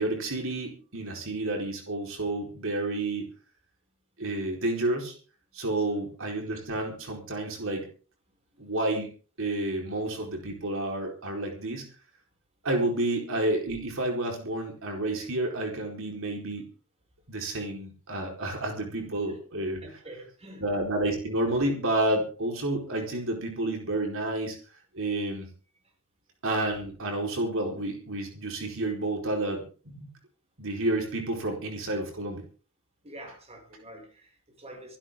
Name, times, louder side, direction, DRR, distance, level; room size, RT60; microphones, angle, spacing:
voice 1, 0.0-3.3 4.2-5.1 5.5-7.9 8.6-9.1 9.4-11.8 12.6-16.7 17.3-19.8 20.6-24.6 24.9-25.5 26.4-30.1 30.6-32.4, right 2 dB, 65° right, 2 dB, 4.5 m, -30 dB
voice 2, 19.8-20.6 33.0-35.0, right 1 dB, 30° right, 3 dB, 6.2 m, -46 dB
26.0 x 12.0 x 3.8 m, 0.39 s
head